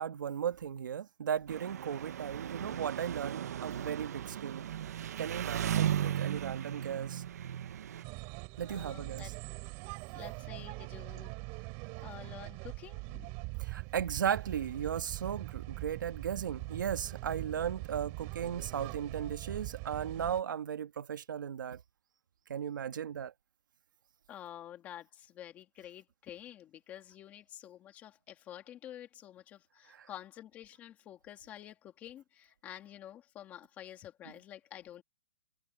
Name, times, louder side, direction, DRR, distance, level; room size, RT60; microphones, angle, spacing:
voice 1, 0.0-4.7 5.2-7.2 8.6-9.3 13.6-21.8 22.5-23.3 29.9-30.1, right 8 dB, 70° right, 1.7 m, -36 dB
Engine, 1.5-8.0, right 10 dB, 50° right, 1.1 m, -36 dB
sound 1, 8.0-20.4, right 30 dB, 25° right, 3.3 m, -42 dB
voice 2, 8.7-9.3 10.1-11.3 12.0-13.3 24.3-35.0, left 11 dB, 15° left, 2.1 m, -49 dB
hypercardioid pair, 175°, 11 cm